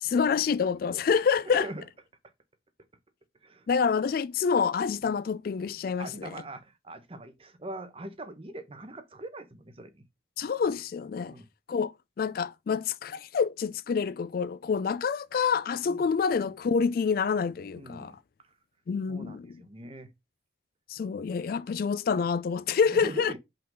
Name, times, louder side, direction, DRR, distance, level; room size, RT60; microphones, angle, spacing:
voice 1, 0.0-1.7 3.7-6.4 10.4-11.4 11.7-18.1 18.9-19.6 20.9-23.3, left 6 dB, 50° left, 0.3 m, -27 dB
voice 2, 1.5-1.8 3.4-3.7 5.0-5.1 6.0-10.0 11.3-11.5 15.9-16.1 17.7-18.2 19.1-20.1 22.8-23.4, right 1 dB, 30° right, 0.9 m, -42 dB
5.5 x 3.8 x 5.2 m
head